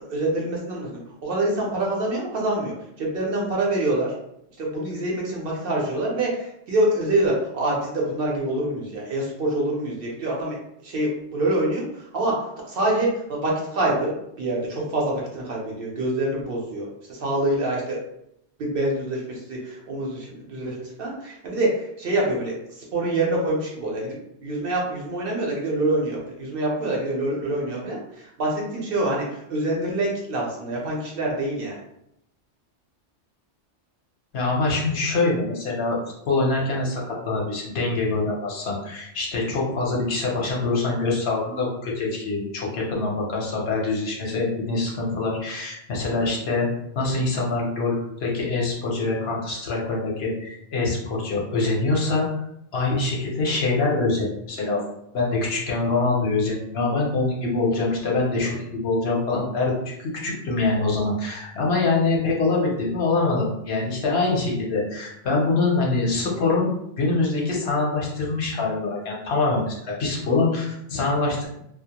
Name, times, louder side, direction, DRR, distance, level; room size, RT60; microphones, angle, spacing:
voice 1, 0.1-4.1 4.6-18.0 18.6-31.8, right 1 dB, 60° right, -3 dB, 0.7 m, -26 dB
voice 2, 34.3-36.0 36.2-46.7 46.9-52.3 52.7-54.8 55.1-66.7 67.0-71.5, left 3 dB, 65° left, -3 dB, 0.9 m, -24 dB
2.2 x 2.1 x 2.8 m, 0.78 s
omnidirectional pair, 1.2 m